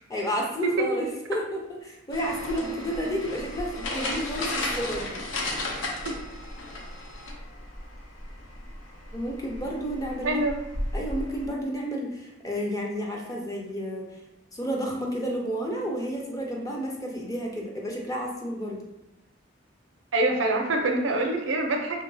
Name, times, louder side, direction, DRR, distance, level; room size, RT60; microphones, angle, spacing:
voice 1, 0.1-1.6 1.8-5.2 9.1-10.4 10.9-14.1 14.5-18.8, equal, 20° left, -1 dB, 0.4 m, -31 dB
sound 1, 2.1-11.5, left 1 dB, 75° left, 0.6 m, -35 dB
voice 2, 10.2-10.6 20.1-22.0, right 2 dB, 75° right, 2 dB, 0.5 m, -25 dB
2.8 x 2.7 x 2.6 m, 0.93 s
head